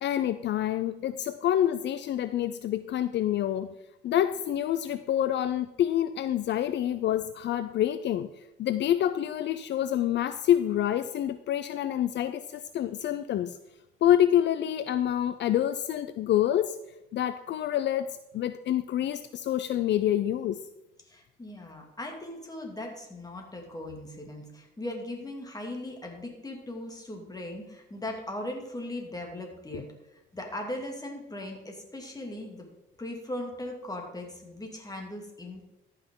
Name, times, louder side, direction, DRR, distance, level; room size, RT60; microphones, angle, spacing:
voice 1, 0.0-3.7 4.0-8.3 8.6-13.6 14.0-16.8 17.1-20.6, left 11 dB, 65° left, 11 dB, 0.4 m, -27 dB
voice 2, 21.1-29.9 30.3-32.7 33.0-35.7, left 1 dB, 20° left, 2 dB, 2.3 m, -38 dB
13.5 x 5.8 x 3.8 m, 0.93 s
cardioid pair, 90°, 20 cm